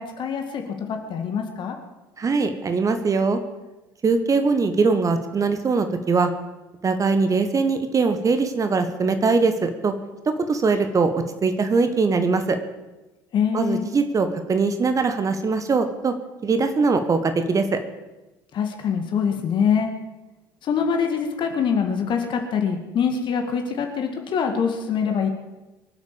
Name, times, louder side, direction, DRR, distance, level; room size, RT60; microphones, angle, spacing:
voice 1, 0.0-1.8 13.3-13.9 18.5-19.9 20.6-25.3, left 6 dB, 45° left, 4 dB, 2.1 m, -24 dB
voice 2, 2.2-3.4 4.0-6.3 6.8-9.9 10.2-12.6 13.5-16.1 16.4-17.8, right 4 dB, 30° right, 8 dB, 1.5 m, -21 dB
23.5 x 8.2 x 7.2 m, 1.1 s
figure-of-eight pair, 60°, 11 cm